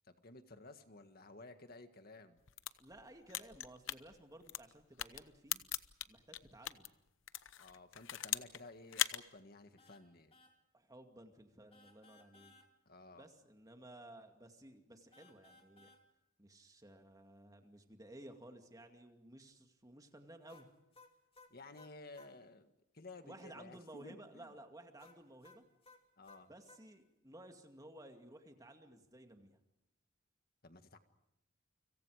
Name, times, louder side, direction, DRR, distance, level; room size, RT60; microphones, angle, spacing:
voice 1, 0.1-2.4 7.6-10.4 12.9-13.3 21.5-24.5 26.2-26.5 30.6-31.0, left 2 dB, 50° left, 8 dB, 1.8 m, -55 dB
sound 1, 2.4-6.9 7.3-8.6 8.9-9.2, left 12 dB, 75° left, 0.9 m, -39 dB
voice 2, 2.8-5.6 6.1-6.9 10.7-12.5 13.2-15.9 16.4-20.7 23.2-25.6 26.5-29.6, right 1 dB, 20° right, 5 dB, 2.4 m, -56 dB
sound 2, 9.8-10.0 10.3-10.5 11.7-12.7 15.1-16.0 20.5-22.3 25.0-26.8, left 3 dB, 30° left, 2.8 m, -62 dB
30.0 x 26.0 x 5.0 m, 0.88 s
head